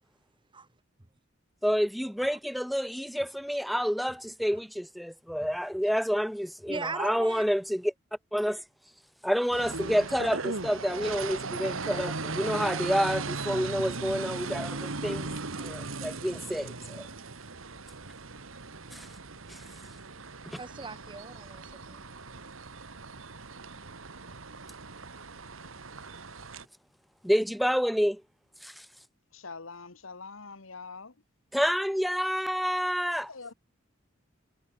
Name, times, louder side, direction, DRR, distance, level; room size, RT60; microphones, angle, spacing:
voice 1, 1.6-7.9 8.3-8.6 9.2-15.3 15.6-17.1 18.9-19.1 19.5-19.6 20.5-20.6 27.2-28.2 28.6-28.9 31.5-33.3, equal, ahead, 0.4 m, -29 dB
voice 2, 6.7-7.4 20.6-22.0, right 4 dB, 25° right, 1.2 m, -38 dB
sound 1, 9.5-26.7, right 3 dB, 90° right, 1.9 m, -38 dB
voice 3, 29.3-31.2 33.3-33.5, left 4 dB, 80° left, 1.7 m, -44 dB
head